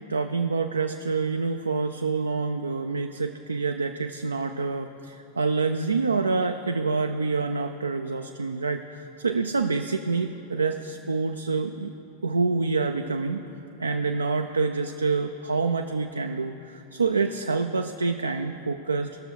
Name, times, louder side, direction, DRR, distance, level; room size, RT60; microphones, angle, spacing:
voice 1, 0.1-11.9 12.2-13.4 13.8-19.2, right 4 dB, 75° right, 6 dB, 0.4 m, -27 dB
17.5 x 6.9 x 4.5 m, 2.9 s
figure-of-eight pair, 90°, 0 cm